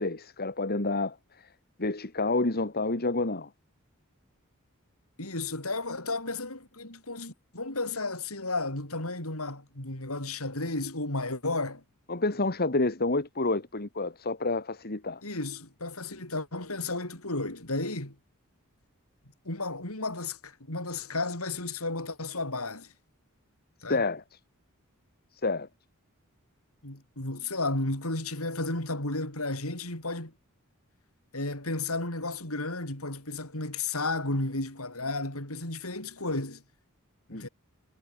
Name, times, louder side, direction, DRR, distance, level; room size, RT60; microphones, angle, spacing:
voice 1, 0.0-1.5 1.8-3.5 12.1-15.2 23.9-24.2 25.4-25.7 37.3-37.5, left 2 dB, 45° left, 2.1 m, -29 dB
voice 2, 5.2-11.8 15.2-18.2 19.4-22.9 23.8-24.0 26.8-30.3 31.3-36.6 37.3-37.5, left 2 dB, 80° left, 7.9 m, -33 dB
head